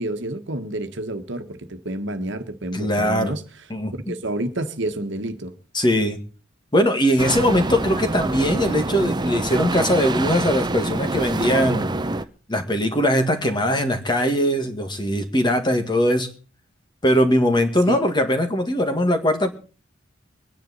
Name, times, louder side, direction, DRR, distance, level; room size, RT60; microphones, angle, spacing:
voice 1, 0.0-3.4 4.1-5.5 17.9-18.0, right 1 dB, 55° right, 1.5 m, -29 dB
voice 2, 2.7-3.4 3.7-3.9 5.7-6.2 6.7-11.9 12.5-16.3 17.0-19.5, equal, 20° left, 1.7 m, -20 dB
sound 1, 7.2-12.2, right 2 dB, 20° right, 0.7 m, -26 dB
23.5 x 10.5 x 4.1 m
head